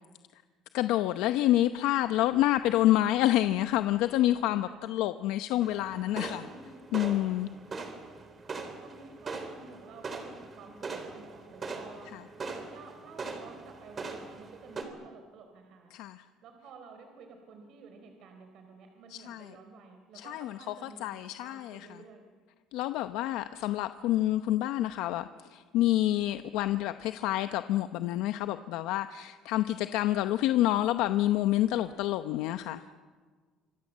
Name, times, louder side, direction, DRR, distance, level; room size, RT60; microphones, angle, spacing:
voice 1, 0.7-6.4 6.9-7.5 12.1-12.2 15.9-16.2 19.1-19.5 20.1-21.9 22.7-32.8, left 14 dB, 80° left, 10 dB, 0.8 m, -28 dB
sound 1, 5.6-14.8, right 4 dB, 30° right, 3.7 m, -41 dB
voice 2, 6.1-6.8 8.8-15.9 16.4-22.2, right 4 dB, 65° right, 5 dB, 3.8 m, -51 dB
26.5 x 25.0 x 7.5 m, 1.5 s
cardioid pair, 130°, 0 cm